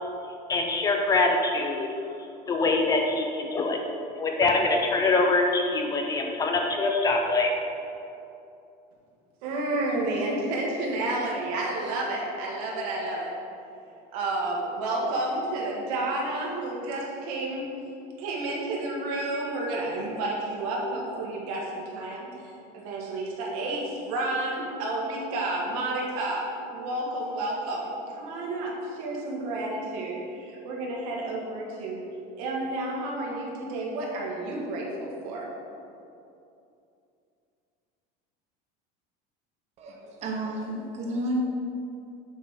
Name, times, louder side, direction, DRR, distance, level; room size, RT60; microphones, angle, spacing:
voice 1, 0.5-1.9 2.5-3.8 4.2-7.5, left 3 dB, 20° left, 2 dB, 0.4 m, -24 dB
voice 2, 9.4-13.3 14.1-17.6 18.2-32.0 32.4-35.5, right 2 dB, 85° right, -3 dB, 1.7 m, -31 dB
voice 3, 39.8-41.4, right 1 dB, 35° right, -1 dB, 1.0 m, -31 dB
7.2 x 3.7 x 5.8 m, 2.6 s
cardioid pair, 170°, 19 cm